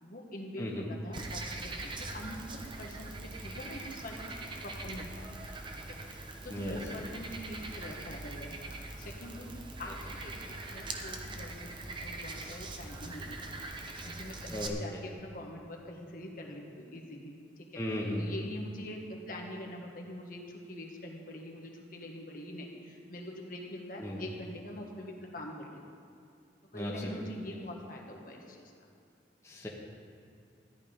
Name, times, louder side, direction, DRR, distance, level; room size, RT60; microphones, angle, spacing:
voice 1, 0.0-5.3 5.9-9.5 9.8-11.7 12.0-13.5 13.8-17.8 18.2-25.8 26.7-28.7, left 1 dB, 50° left, 0 dB, 1.4 m, -44 dB
Frog, 1.1-14.7, right 2 dB, 25° right, 0.9 m, -42 dB
voice 2, 14.5-15.0 17.8-18.4 24.0-24.2 26.7-27.2 29.4-29.7, equal, 15° left, -3 dB, 1.2 m, -36 dB
14.0 x 10.5 x 5.2 m, 2.4 s
head